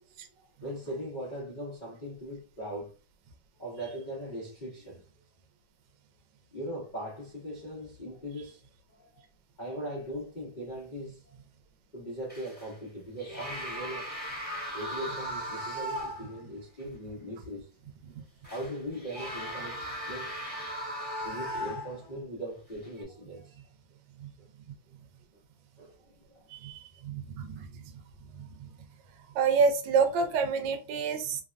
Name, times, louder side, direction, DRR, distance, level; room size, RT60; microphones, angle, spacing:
voice 1, 0.3-2.9 3.6-5.0 6.5-8.6 9.0-9.2 9.6-11.2 11.9-14.1 14.7-17.7 18.5-20.3 21.2-23.5 25.8-26.5, equal, 75° left, 0.4 m, -40 dB
sound 1, 12.3-12.7 13.2-16.4 16.8-16.9 18.4-22.1 22.8-23.0, equal, 10° left, 0.6 m, -37 dB
voice 2, 26.5-27.7 28.3-28.7 29.3-31.4, right 5 dB, 75° right, 1.1 m, -28 dB
3.2 x 2.1 x 2.4 m
omnidirectional pair, 2.2 m